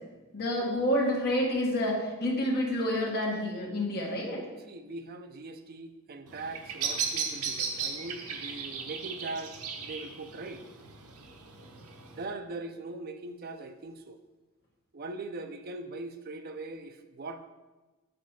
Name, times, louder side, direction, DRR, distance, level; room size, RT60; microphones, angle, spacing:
voice 1, 0.3-4.5, left 1 dB, 45° left, -3 dB, 1.7 m, -28 dB
voice 2, 4.6-10.6 12.2-14.2 14.9-17.5, right 2 dB, 45° right, 8 dB, 0.6 m, -41 dB
Bird vocalization bird call bird song, 6.3-12.2, right 6 dB, 80° right, 1.0 m, -36 dB
6.7 x 5.2 x 5.7 m, 1.2 s
head